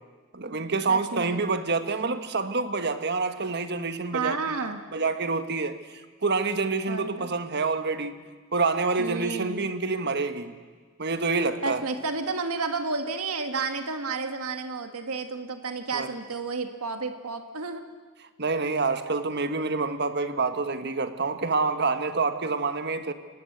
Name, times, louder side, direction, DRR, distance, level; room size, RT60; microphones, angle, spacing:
voice 1, 0.3-4.6 4.9-5.8 6.2-8.2 8.5-10.5 11.0-11.8 15.9-16.1 18.4-23.1, right 4 dB, 50° right, 1.4 m, -27 dB
voice 2, 0.9-1.4 4.1-4.8 6.9-7.3 9.0-9.7 11.6-17.8, right 4 dB, 85° right, 1.7 m, -31 dB
27.0 x 19.0 x 8.1 m
head